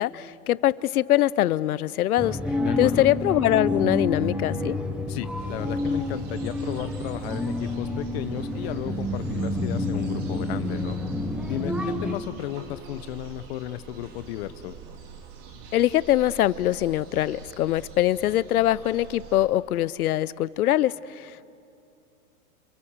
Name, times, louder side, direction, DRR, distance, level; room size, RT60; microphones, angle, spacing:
voice 1, 0.0-2.4 2.8-4.8 15.7-21.5, left 13 dB, 75° left, 19 dB, 0.8 m, -23 dB
sound 1, 2.2-12.2, left 1 dB, ahead, 0.8 m, -29 dB
voice 2, 2.6-3.1 5.1-11.0 11.5-14.8, left 13 dB, 45° left, 13 dB, 1.0 m, -34 dB
sound 2, 5.4-19.5, right 6 dB, 35° right, 2.6 m, -45 dB
28.0 x 27.5 x 7.3 m, 2.7 s
hypercardioid pair, 155°, 44 cm